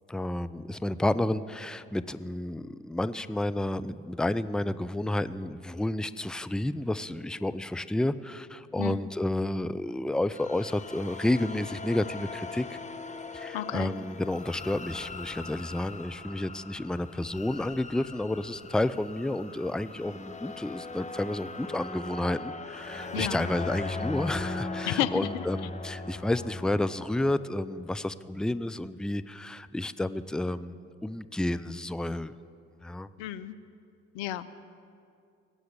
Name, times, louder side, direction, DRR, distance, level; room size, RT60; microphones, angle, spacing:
voice 1, 0.1-12.8 13.3-32.3 32.8-33.1, left 1 dB, ahead, 13 dB, 0.5 m, -31 dB
voice 2, 8.8-9.1 13.5-13.9 23.1-23.5 24.9-25.4 33.2-33.6 34.1-34.4, left 12 dB, 80° left, 14 dB, 0.6 m, -32 dB
sound 1, 10.3-27.3, left 3 dB, 25° left, 1.2 m, -39 dB
19.5 x 7.8 x 8.6 m, 2.4 s
hypercardioid pair, 50°, 31 cm